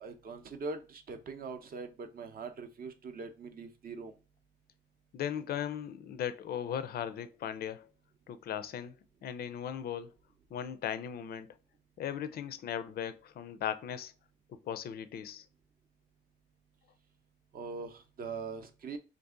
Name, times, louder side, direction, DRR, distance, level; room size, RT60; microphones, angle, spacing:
voice 1, 0.0-4.1 17.5-19.0, right 4 dB, 45° right, 0.6 m, -42 dB
voice 2, 5.1-7.9 8.3-8.9 9.2-10.1 10.5-11.5 12.0-14.1 14.5-15.4, left 9 dB, 50° left, 0.4 m, -37 dB
2.6 x 2.4 x 3.6 m
cardioid pair, 90°, 20 cm